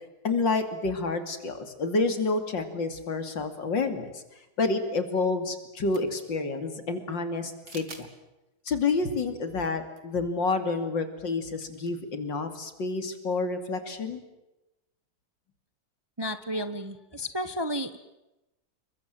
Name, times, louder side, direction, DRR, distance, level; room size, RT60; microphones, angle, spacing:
voice 1, 0.2-4.2 4.6-7.9 8.7-14.2, left 3 dB, 80° left, 8 dB, 3.5 m, -29 dB
sound 1, 5.8-6.3 7.7-8.1 8.6-8.7 9.9-10.0 10.3-10.4 11.6-12.0, right 4 dB, 60° right, 3.0 m, -46 dB
voice 2, 16.2-18.0, equal, 20° right, 11 dB, 0.9 m, -32 dB
29.0 x 23.0 x 7.8 m, 0.98 s
omnidirectional pair, 2.0 m